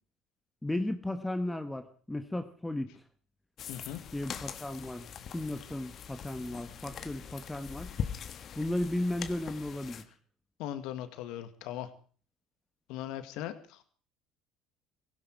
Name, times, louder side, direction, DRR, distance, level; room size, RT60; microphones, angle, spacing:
voice 1, 0.6-3.0 4.1-5.1 5.3-7.9 8.5-10.0, left 1 dB, 10° left, 9 dB, 1.5 m, -35 dB
sound 1, 3.6-10.0, left 8 dB, 50° left, 1.5 m, -42 dB
voice 2, 3.7-4.0 10.6-11.9 12.9-13.9, left 11 dB, 70° left, 10 dB, 2.0 m, -39 dB
17.0 x 16.0 x 4.7 m, 0.43 s
supercardioid pair, 80°, 0 cm